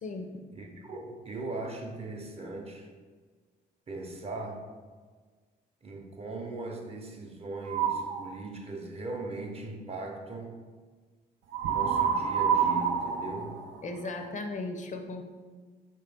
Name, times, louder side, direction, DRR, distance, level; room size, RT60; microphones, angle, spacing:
voice 1, 0.0-0.4 13.8-15.2, left 2 dB, 40° left, 5 dB, 0.5 m, -36 dB
voice 2, 0.5-2.9 3.9-4.7 5.8-10.6 11.6-13.6, right 2 dB, 35° right, 3 dB, 0.7 m, -39 dB
sound 1, 7.6-8.2 11.5-14.3, right 7 dB, 70° right, 0.5 m, -28 dB
4.4 x 3.0 x 3.3 m, 1.5 s
supercardioid pair, 75°, 19 cm